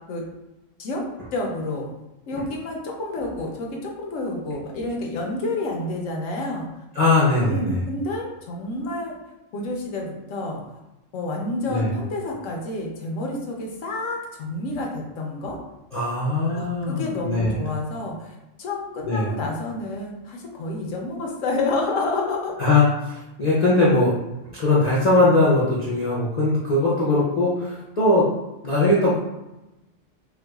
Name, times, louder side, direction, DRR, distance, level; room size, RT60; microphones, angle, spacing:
voice 1, 1.3-1.9 2.3-6.7 7.5-9.2 9.5-10.6 11.1-15.6 16.5-22.5, left 2 dB, 80° left, 0 dB, 1.1 m, -29 dB
voice 2, 6.9-7.8 11.7-11.9 15.9-17.6 19.0-19.3 22.6-24.1 24.5-28.2 28.6-29.2, left 2 dB, 40° left, -8 dB, 0.6 m, -20 dB
4.6 x 2.3 x 2.3 m, 0.98 s
omnidirectional pair, 1.3 m